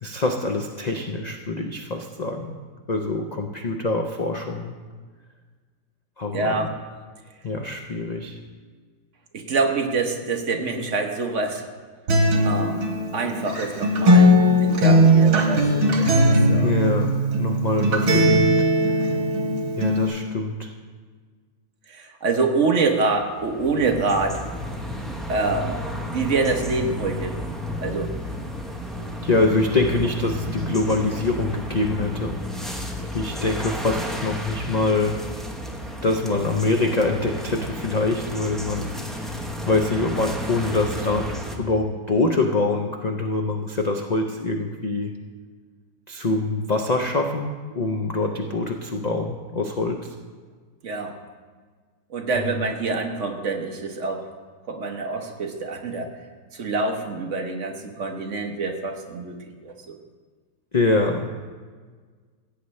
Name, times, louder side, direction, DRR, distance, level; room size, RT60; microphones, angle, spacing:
voice 1, 0.0-2.5 2.9-4.7 6.2-6.7 7.4-8.4 16.6-18.5 19.8-20.7 29.2-32.4 33.1-35.2 36.0-39.3 39.7-45.1 46.1-50.1 52.4-52.5 60.7-61.3, left 2 dB, 60° left, 3 dB, 0.4 m, -24 dB
voice 2, 6.3-6.7 9.3-11.6 12.4-12.8 13.1-14.3 14.6-16.8 21.9-24.5 25.3-27.4 27.8-28.1 50.8-51.1 52.1-54.2 54.7-56.1 56.6-59.4 59.6-60.0, right 3 dB, 55° right, 4 dB, 1.2 m, -26 dB
Acoustic guitar, 12.1-20.1, equal, 85° right, 1.9 m, -18 dB
sound 1, 23.1-41.6, equal, ahead, 0.6 m, -32 dB
16.5 x 8.4 x 3.2 m, 1.5 s
omnidirectional pair, 1.7 m